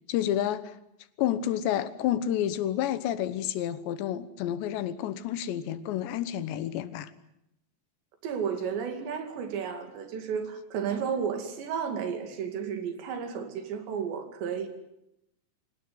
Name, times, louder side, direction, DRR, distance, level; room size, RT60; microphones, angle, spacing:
voice 1, 0.1-0.8 1.2-7.1, left 11 dB, 90° left, 3.4 m, -29 dB
voice 2, 8.2-14.7, right 7 dB, 85° right, 4.8 m, -32 dB
25.5 x 17.5 x 9.6 m
omnidirectional pair, 4.9 m